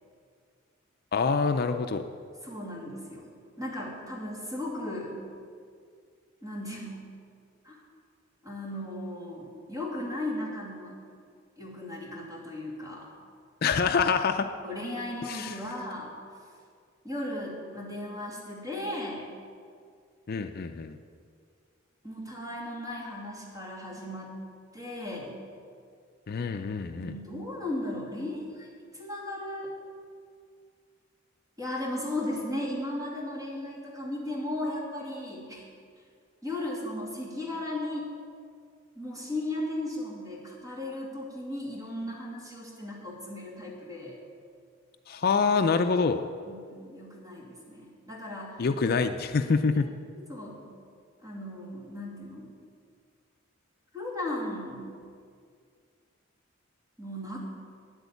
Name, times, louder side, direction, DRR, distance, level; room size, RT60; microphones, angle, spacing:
voice 1, 1.1-2.1 13.6-14.5 15.3-15.6 20.3-21.0 26.3-27.1 45.1-46.2 48.6-49.9, left 5 dB, 50° left, 7 dB, 0.4 m, -26 dB
voice 2, 2.4-3.3 3.6-5.2 6.4-7.0 7.6-7.8 8.4-10.9 11.6-13.1 14.6-16.1 17.0-19.3 22.0-24.4 24.7-25.3 26.9-28.7 28.9-29.7 31.6-35.6 36.4-38.1 39.0-44.2 46.5-48.7 49.7-49.8 50.3-50.7 51.2-52.5 53.9-54.9 57.0-57.4, left 1 dB, 15° right, -4 dB, 2.6 m, -36 dB
9.8 x 8.1 x 8.3 m, 2.2 s
head